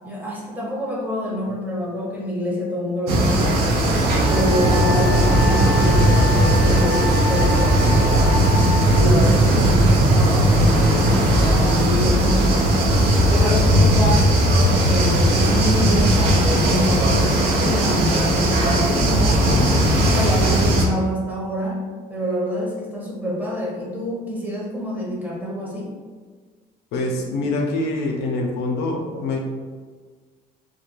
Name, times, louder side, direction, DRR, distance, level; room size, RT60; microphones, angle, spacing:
voice 1, 0.0-3.7 4.2-8.5 8.9-12.8 13.2-14.3 14.8-19.4 19.9-21.8 22.1-25.9 29.1-29.2, equal, 10° right, -4 dB, 0.6 m, -27 dB
sound 1, 3.1-20.9, right 1 dB, 80° right, 0.5 m, -17 dB
Wind instrument woodwind instrument, 4.2-9.1, left 2 dB, 30° left, 0.5 m, -28 dB
sound 2, 5.1-13.2, right 2 dB, 40° right, 1.0 m, -26 dB
voice 2, 19.5-20.0 26.9-29.4, left 2 dB, 85° left, 1 dB, 0.5 m, -25 dB
2.2 x 2.2 x 2.9 m, 1.5 s
cardioid pair, 110°, 17 cm